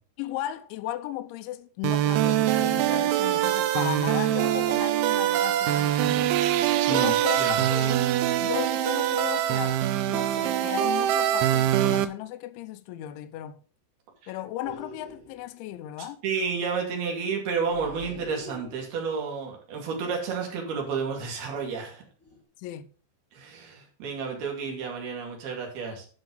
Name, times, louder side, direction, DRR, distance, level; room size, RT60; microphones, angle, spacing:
voice 1, 0.2-6.5 6.8-7.4 7.7-13.6 14.3-16.2 22.6-22.9, left 13 dB, 80° left, 3.0 m, -36 dB
sound 1, 1.8-12.1, right 12 dB, 80° right, 3.0 m, -24 dB
voice 2, 6.9-7.7 14.2-14.3 16.2-22.0 23.3-26.1, right 5 dB, 55° right, 4.0 m, -31 dB
sound 2, 14.6-15.5 17.5-19.1 20.8-21.2 21.5-21.8 22.2-22.4, left 1 dB, 5° left, 1.3 m, -45 dB
10.5 x 5.8 x 5.4 m
omnidirectional pair, 5.7 m